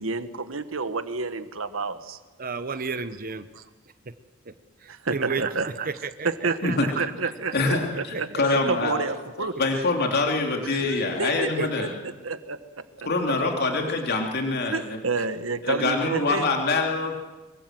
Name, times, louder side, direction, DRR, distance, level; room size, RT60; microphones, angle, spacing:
voice 1, 0.0-2.2 3.5-3.6 4.9-5.7 6.2-8.3 8.7-9.6 10.6-11.7 12.0-12.6 14.7-16.4, right 3 dB, 85° right, 11 dB, 1.4 m, -29 dB
voice 2, 2.4-3.5 4.5-4.6 4.8-7.5 8.1-8.6 11.6-11.7, right 5 dB, 45° right, 11 dB, 1.0 m, -32 dB
voice 3, 7.5-9.0 9.4-11.9 13.0-15.0 15.6-17.2, left 3 dB, 55° left, 2 dB, 3.1 m, -25 dB
24.0 x 23.5 x 7.8 m, 1.2 s
head